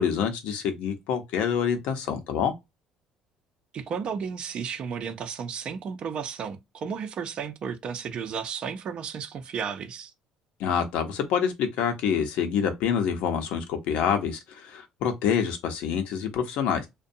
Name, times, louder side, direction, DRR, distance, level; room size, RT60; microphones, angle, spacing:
voice 1, 0.0-2.5 10.6-16.9, left 7 dB, 75° left, 0.7 m, -26 dB
voice 2, 3.7-10.1, right 6 dB, 55° right, 0.6 m, -33 dB
2.5 x 2.2 x 2.6 m
supercardioid pair, 90°, 2 cm